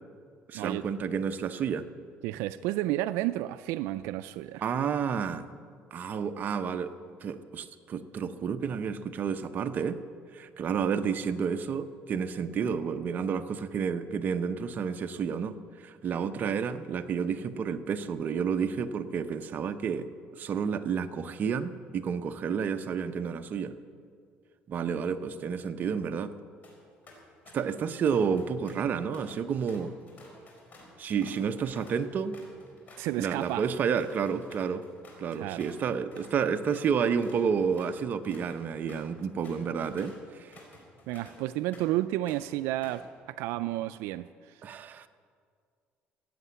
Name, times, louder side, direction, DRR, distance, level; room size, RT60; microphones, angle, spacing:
voice 1, 0.5-1.9 4.6-5.5 5.9-6.9 7.2-10.0 10.3-20.1 20.4-23.7 24.7-26.3 27.5-29.9 31.0-32.4 33.2-34.8 35.2-40.5 44.6-45.1, right 6 dB, 45° right, 8 dB, 0.7 m, -30 dB
voice 2, 2.2-4.6 33.0-33.7 35.3-35.6 41.1-44.6, right 15 dB, 90° right, 13 dB, 0.3 m, -31 dB
sound 1, 26.6-26.8 27.1-27.8 28.1-35.8 36.1-36.4 36.7-42.0 42.3-43.1, left 2 dB, 45° left, 4.2 m, -53 dB
15.5 x 8.5 x 8.1 m, 2.2 s
cardioid pair, 120°, 4 cm